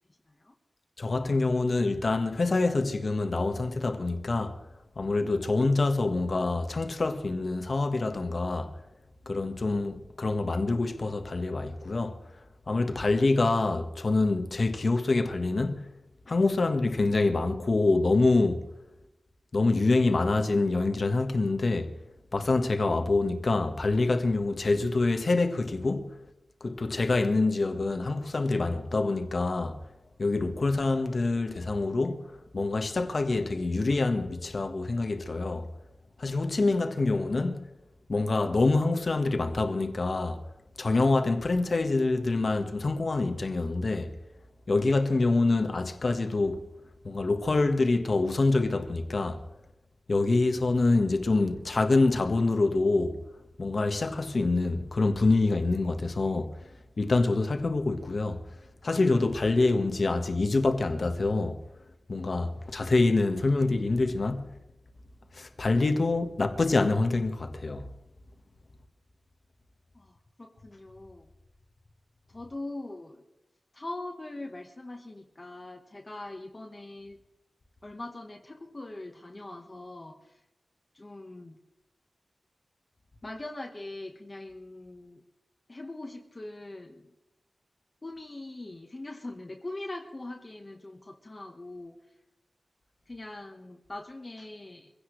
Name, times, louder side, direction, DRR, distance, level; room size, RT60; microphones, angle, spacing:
voice 1, 1.0-4.6 5.0-8.7 9.3-12.2 12.7-15.9 16.3-18.7 19.5-22.0 22.3-26.2 26.6-29.8 30.2-35.7 36.2-37.7 38.1-40.4 40.8-44.1 44.7-46.7 47.0-49.4 50.1-53.2 53.6-56.6 57.0-58.4 58.8-61.6 62.1-64.5 65.3-67.9, left 3 dB, 50° left, 1.5 m, -26 dB
voice 2, 69.9-71.3 72.3-73.2 73.7-77.2 77.8-80.2 80.9-81.6 83.2-85.2 85.7-87.1 88.0-92.0 93.1-94.9, left 2 dB, 30° left, 1.4 m, -42 dB
24.5 x 16.5 x 3.3 m
wide cardioid pair, 110°, 0 cm